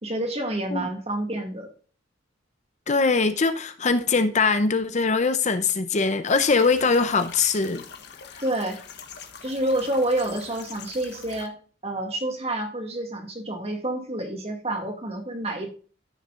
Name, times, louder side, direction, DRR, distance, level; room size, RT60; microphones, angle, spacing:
voice 1, 0.0-1.7 8.4-8.8 9.4-11.5 11.8-15.7, right 1 dB, 30° right, 2.1 m, -28 dB
voice 2, 2.9-7.9, left 4 dB, 35° left, 0.7 m, -22 dB
sound 1, 6.3-11.5, left 7 dB, 55° left, 1.4 m, -44 dB
14.0 x 6.5 x 2.5 m
head